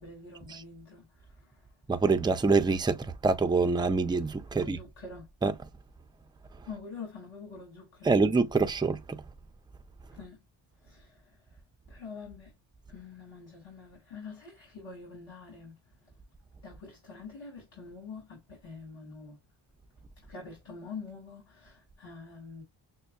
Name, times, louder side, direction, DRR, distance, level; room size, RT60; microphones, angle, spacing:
voice 1, 0.0-1.7 4.5-5.3 6.7-8.2 10.1-10.4 10.8-11.6 11.9-12.6 12.9-16.1 16.6-19.4 20.2-22.6, left 4 dB, 70° left, 2.5 m, -46 dB
voice 2, 1.9-4.8 5.4-5.6 8.0-9.2, right 4 dB, 10° right, 0.4 m, -26 dB
6.3 x 2.1 x 2.3 m
cardioid pair, 70°, 46 cm